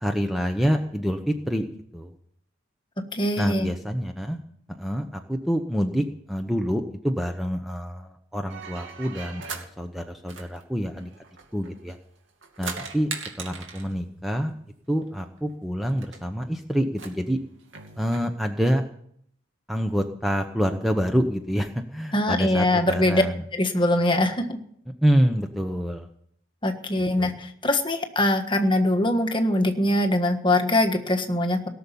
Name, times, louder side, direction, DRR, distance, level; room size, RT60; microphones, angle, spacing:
voice 1, 0.0-2.1 3.4-4.4 4.8-11.1 11.5-12.0 12.6-13.1 13.4-14.5 14.9-17.4 18.0-18.8 19.7-23.4 25.0-26.1 27.2-27.3, equal, ahead, 5 dB, 0.9 m, -26 dB
voice 2, 3.1-3.7 22.1-23.2 23.5-24.6 26.6-31.7, left 1 dB, 25° left, 6 dB, 1.4 m, -22 dB
sound 1, 8.5-9.7 10.3-11.9 12.3-13.9 15.1-15.2 15.4-15.5 15.9-16.2 16.9-18.3, right 5 dB, 70° right, 2.5 m, -39 dB
18.0 x 7.0 x 9.9 m, 0.67 s
head